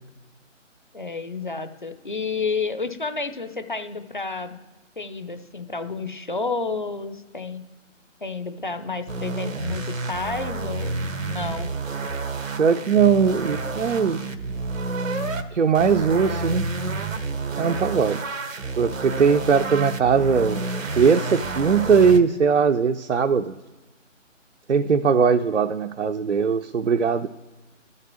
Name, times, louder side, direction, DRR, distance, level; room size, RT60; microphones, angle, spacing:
voice 1, 0.9-4.6 5.0-7.6 8.2-11.7, left 4 dB, 40° left, 10 dB, 0.8 m, -30 dB
sound 1, 9.1-15.4 15.7-22.2, right 3 dB, 85° right, 1.2 m, -29 dB
voice 2, 12.6-14.2 15.5-16.7 17.6-18.4 18.8-20.6 21.0-23.5 24.7-27.3, right 6 dB, 65° right, 6 dB, 0.7 m, -20 dB
12.5 x 6.6 x 7.3 m, 1.2 s
hypercardioid pair, 180°, 38 cm